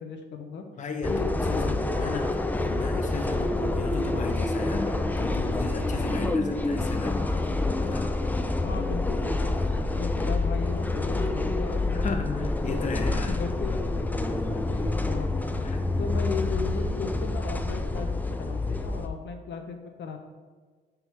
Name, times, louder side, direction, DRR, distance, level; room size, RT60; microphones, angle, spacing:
voice 1, 0.0-0.6 1.1-2.2 8.6-12.0 12.3-12.9 13.3-14.2 14.5-15.6 16.0-20.2, left 4 dB, 65° left, 5 dB, 0.8 m, -36 dB
voice 2, 0.8-8.1 12.0-13.4 15.6-15.9, left 4 dB, 40° left, 5 dB, 0.7 m, -35 dB
sound 1, 1.0-19.1, left 2 dB, 10° left, 0.4 m, -27 dB
5.6 x 3.8 x 5.7 m, 1.4 s
cardioid pair, 90°, 20 cm